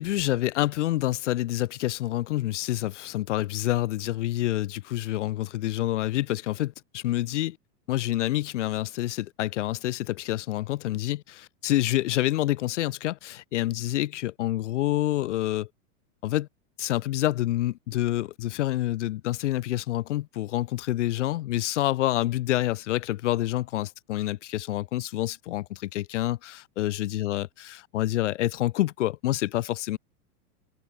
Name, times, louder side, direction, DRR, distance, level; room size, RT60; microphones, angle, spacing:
voice 1, 0.0-7.6 7.9-15.7 16.2-16.5 16.8-27.5 27.9-30.0, left 15 dB, 55° left, 0.6 m, -27 dB
supercardioid pair, 175°, 46 cm